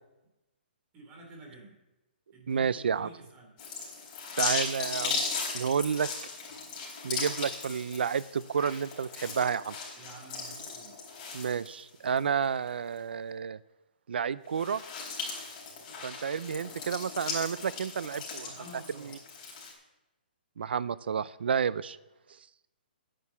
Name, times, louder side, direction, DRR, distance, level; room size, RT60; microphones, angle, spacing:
voice 1, 0.9-1.8 2.3-3.5 9.9-11.0 18.4-19.2, right 2 dB, 20° right, 1 dB, 3.3 m, -50 dB
voice 2, 2.5-3.1 4.4-5.2 5.5-6.1 7.0-9.8 11.3-13.6 14.1-14.8 16.0-18.5 19.0-19.2 20.6-22.0, right 7 dB, 75° right, 18 dB, 0.6 m, -30 dB
sound 1, 3.6-12.2 12.6-12.7 14.5-19.7, left 4 dB, 30° left, 4.1 m, -37 dB
10.0 x 9.6 x 7.2 m, 0.98 s
hypercardioid pair, 160°, 6 cm